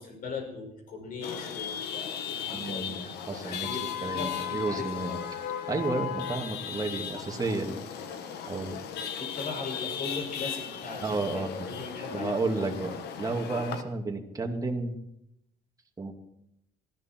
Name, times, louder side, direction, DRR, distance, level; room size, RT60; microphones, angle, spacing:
voice 1, 0.0-5.3 9.2-12.3, left 4 dB, 55° left, 3 dB, 6.0 m, -39 dB
Chatter / Vehicle horn car horn honking / Traffic noise roadway noise, 1.2-13.8, left 8 dB, 75° left, 1.7 m, -36 dB
voice 2, 2.5-5.2 5.7-7.8 8.5-8.8 11.0-11.7 12.1-15.0 16.0-16.1, right 3 dB, 20° right, 2 dB, 2.3 m, -32 dB
20.0 x 14.0 x 4.5 m, 0.80 s
cardioid pair, 110°, 17 cm